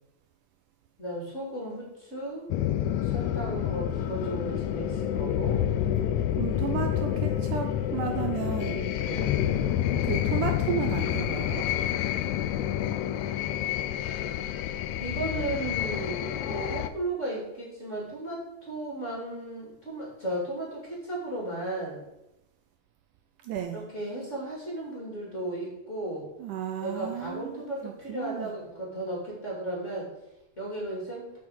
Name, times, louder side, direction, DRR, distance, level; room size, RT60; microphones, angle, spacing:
voice 1, 1.0-2.5 3.0-5.6 9.0-9.5 15.0-22.0 23.7-26.3 26.8-30.1 30.6-31.3, right 1 dB, 20° left, -4 dB, 2.6 m, -35 dB
sound 1, 2.5-16.9, left 11 dB, 85° left, 1.7 m, -28 dB
voice 2, 6.4-8.9 10.0-11.7 23.4-23.8 26.4-28.5, right 8 dB, 80° right, 4 dB, 2.0 m, -33 dB
7.0 x 6.2 x 6.3 m, 0.89 s
omnidirectional pair, 4.0 m